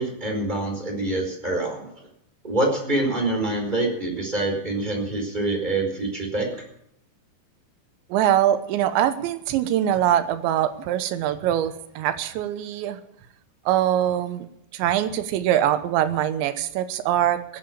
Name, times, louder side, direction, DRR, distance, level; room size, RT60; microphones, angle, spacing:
voice 1, 0.0-1.9 2.4-6.6, right 2 dB, 10° right, 1 dB, 4.4 m, -25 dB
voice 2, 8.1-13.0 13.7-14.5 14.7-17.6, right 11 dB, 90° right, 11 dB, 3.3 m, -23 dB
19.5 x 8.9 x 7.2 m, 0.72 s
omnidirectional pair, 5.0 m